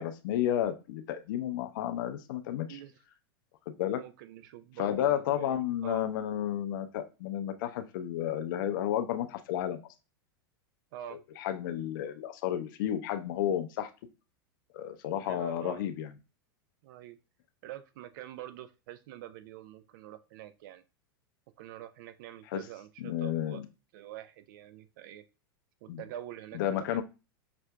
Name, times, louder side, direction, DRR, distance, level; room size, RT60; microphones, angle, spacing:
voice 1, 0.0-2.8 3.7-4.0 4.8-9.8 11.4-13.9 14.7-16.1 22.5-22.6 23.0-23.6 25.9-26.0 26.5-27.0, left 11 dB, 60° left, 8 dB, 0.5 m, -32 dB
voice 2, 4.0-6.1 10.9-11.2 15.2-15.9 16.8-17.2 17.6-20.8 21.6-23.6 23.9-25.2 25.8-27.0, right 12 dB, 55° right, 11 dB, 0.5 m, -45 dB
5.8 x 2.5 x 2.2 m, 0.30 s
hypercardioid pair, 95°, 12 cm